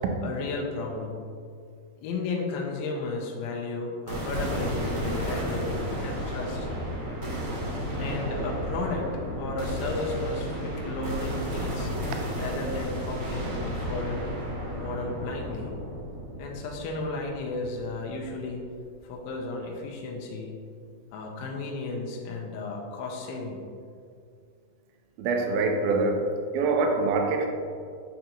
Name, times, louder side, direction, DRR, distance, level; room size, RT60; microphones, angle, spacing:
voice 1, 0.2-1.2 2.0-6.7 8.0-9.1 9.4-11.9 12.4-14.3 14.7-15.7 16.4-18.6 19.0-20.6 21.1-23.6, left 3 dB, 80° left, -1 dB, 2.4 m, -34 dB
sound 1, 4.1-18.4, equal, 55° right, 1.4 m, -33 dB
voice 2, 25.2-27.5, right 3 dB, 80° right, 3 dB, 2.3 m, -25 dB
8.9 x 3.9 x 2.9 m, 2.3 s
omnidirectional pair, 4.5 m